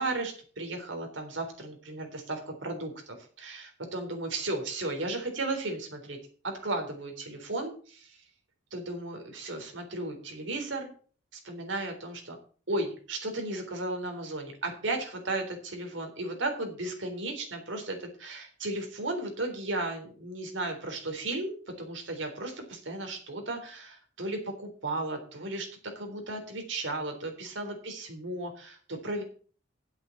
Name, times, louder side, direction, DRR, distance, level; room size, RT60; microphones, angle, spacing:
voice 1, 0.0-6.2 6.4-8.2 8.7-10.9 11.3-12.4 12.7-29.2, right 2 dB, 85° right, 4 dB, 3.7 m, -35 dB
9.9 x 7.9 x 7.1 m, 0.42 s
head